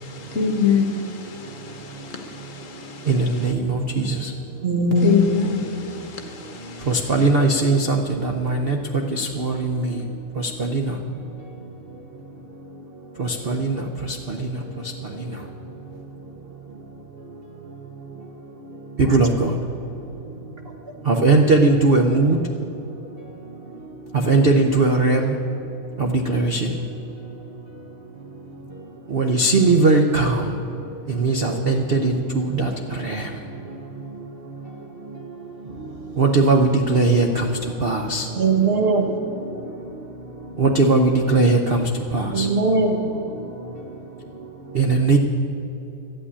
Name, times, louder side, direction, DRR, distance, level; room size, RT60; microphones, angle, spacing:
voice 1, 0.0-3.5 5.0-7.3, left 6 dB, 45° left, 4 dB, 1.4 m, -26 dB
voice 2, 3.1-3.6 6.9-8.0 8.2-8.7 9.2-9.5 13.5-13.7 19.0-19.3 21.1-22.4 24.3-25.3 26.3-26.6 29.1-30.3 31.2-32.7 36.2-37.3 37.8-38.2 40.6-41.6 42.1-42.4 44.8-45.2, right 3 dB, 85° right, 4 dB, 0.5 m, -18 dB
voice 3, 4.6-5.3 19.1-19.2 38.4-39.1 42.3-43.0, right 2 dB, 40° right, 2 dB, 1.1 m, -19 dB
12.5 x 8.7 x 9.6 m, 3.0 s
omnidirectional pair, 2.1 m